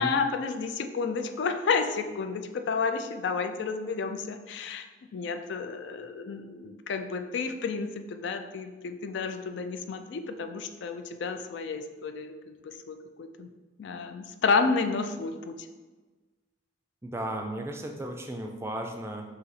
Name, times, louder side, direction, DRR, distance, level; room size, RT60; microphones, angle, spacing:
voice 1, 0.0-4.9 5.1-13.5 13.8-15.5, left 4 dB, 65° left, 7 dB, 0.3 m, -31 dB
voice 2, 17.0-19.2, right 1 dB, 15° right, 3 dB, 0.3 m, -35 dB
4.0 x 2.8 x 4.0 m, 1.3 s
head